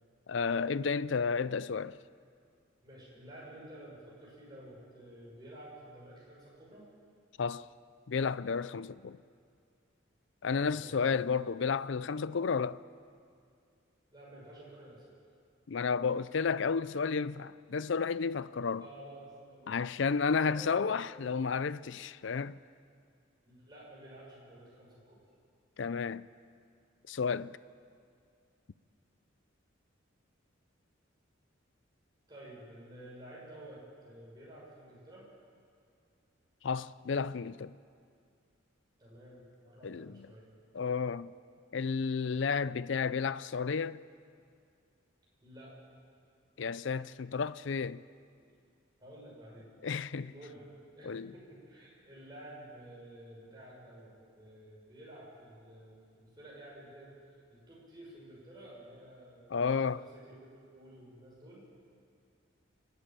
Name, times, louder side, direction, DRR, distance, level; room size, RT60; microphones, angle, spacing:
voice 1, 0.3-2.0 7.4-7.7 8.1-9.2 10.4-12.8 15.7-18.8 19.7-22.6 25.8-26.3 27.1-27.6 36.6-37.8 39.8-40.3 40.7-41.3 41.7-44.0 46.6-48.0 49.8-50.3 51.0-51.3 59.5-60.0, left 5 dB, 65° left, 0.5 m, -32 dB
voice 2, 2.8-6.9 9.1-9.2 10.7-11.3 14.1-15.1 18.8-19.8 20.4-20.9 23.4-25.2 32.3-35.3 39.0-40.5 45.4-45.7 48.3-48.4 49.0-49.7 50.2-50.6 50.9-57.1 57.5-61.6, right 1 dB, 20° right, 6.2 m, -51 dB
29.5 x 10.0 x 9.0 m
head